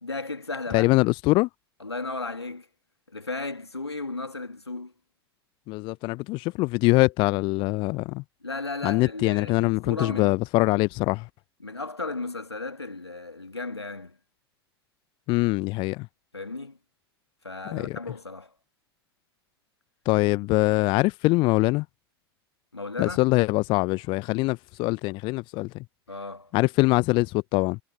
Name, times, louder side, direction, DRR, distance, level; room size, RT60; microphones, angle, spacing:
voice 1, 0.0-0.9 1.8-2.7 3.1-4.9 8.4-10.4 11.6-14.2 16.3-16.8 17.4-18.5 22.7-23.2 26.1-26.5, left 3 dB, 85° left, 2.4 m, -35 dB
voice 2, 0.7-1.5 5.7-8.2 8.8-11.3 15.3-16.1 17.7-18.0 20.1-21.8 23.0-25.8 26.5-27.8, left 23 dB, 35° left, 0.6 m, -23 dB
figure-of-eight pair, 90°, 13 cm